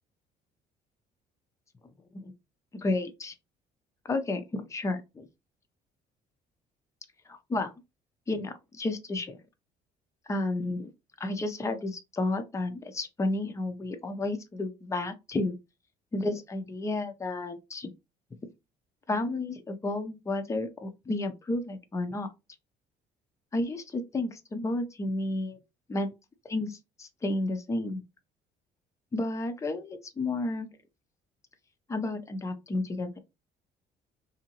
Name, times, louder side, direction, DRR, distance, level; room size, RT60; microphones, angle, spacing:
voice 1, 2.7-3.3 4.1-5.3 7.3-7.7 8.3-9.4 10.3-10.9 11.2-15.6 16.1-17.9 19.1-22.3 23.5-25.6 25.9-26.1 26.4-28.0 29.1-30.7 31.9-33.2, left 2 dB, 15° left, 0.5 m, -31 dB
2.8 x 2.6 x 2.8 m
cardioid pair, 110°, 17 cm